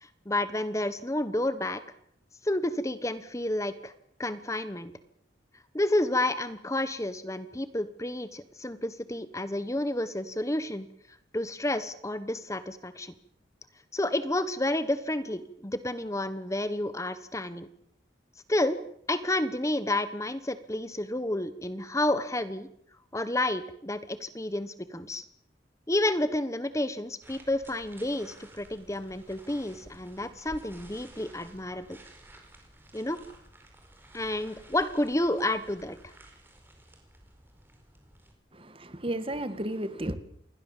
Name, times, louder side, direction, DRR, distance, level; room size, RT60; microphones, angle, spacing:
voice 1, 0.0-1.8 2.4-3.9 4.2-4.9 5.7-10.9 11.3-13.1 13.9-17.7 18.5-18.8 19.1-22.7 23.1-25.2 25.9-32.0 32.9-33.2 34.1-36.0, left 1 dB, 15° left, 12 dB, 1.1 m, -30 dB
sound 1, 27.2-38.3, right 1 dB, 10° right, 4.8 m, -53 dB
voice 2, 38.5-40.2, right 1 dB, 30° right, 12 dB, 1.8 m, -33 dB
28.0 x 21.5 x 7.4 m, 0.71 s
head